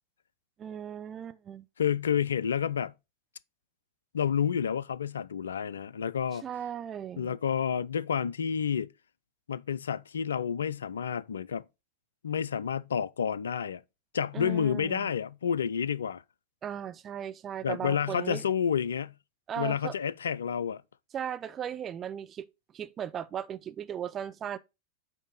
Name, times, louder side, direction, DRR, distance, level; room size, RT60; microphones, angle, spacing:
voice 1, 0.6-1.7 6.3-7.4 14.3-15.1 16.6-18.4 19.5-19.9 21.1-22.5 22.7-24.6, right 9 dB, 25° right, 0.4 m, -37 dB
voice 2, 1.8-2.9 4.1-6.4 7.2-8.9 9.5-11.6 12.2-13.8 14.1-16.2 17.6-19.1 19.6-20.8, left 7 dB, 70° left, 0.3 m, -29 dB
8.0 x 2.7 x 5.3 m
figure-of-eight pair, 90°, 0 cm